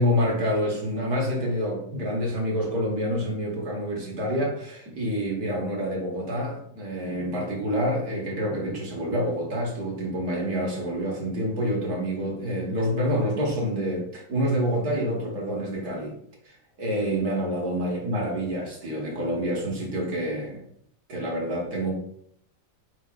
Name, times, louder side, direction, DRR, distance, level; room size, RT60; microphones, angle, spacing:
voice 1, 0.0-16.1 16.4-16.5 16.8-20.6 21.1-21.9, equal, 55° right, -1 dB, 1.4 m, -27 dB
4.7 x 4.3 x 2.3 m, 0.68 s
omnidirectional pair, 2.2 m